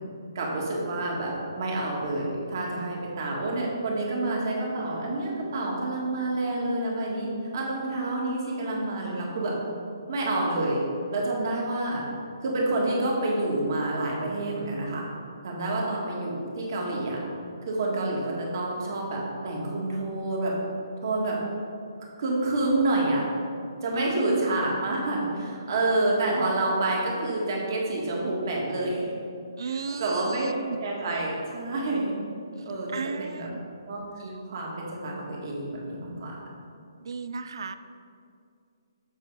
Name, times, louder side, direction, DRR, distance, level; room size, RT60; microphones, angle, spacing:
voice 1, 0.3-1.3 1.6-9.5 10.1-10.8 11.1-12.0 12.4-15.0 15.4-17.2 17.7-20.5 21.0-21.4 22.2-23.2 23.8-29.1 29.6-30.5 30.8-32.2 32.6-32.9 33.2-33.5 33.9-36.4, right 2 dB, 50° right, -3 dB, 1.7 m, -28 dB
voice 2, 23.9-24.7 29.6-30.8 32.9-33.7 37.0-37.8, right 5 dB, 75° right, 11 dB, 0.4 m, -34 dB
7.3 x 3.7 x 5.4 m, 2.4 s
hypercardioid pair, 160°, 2 cm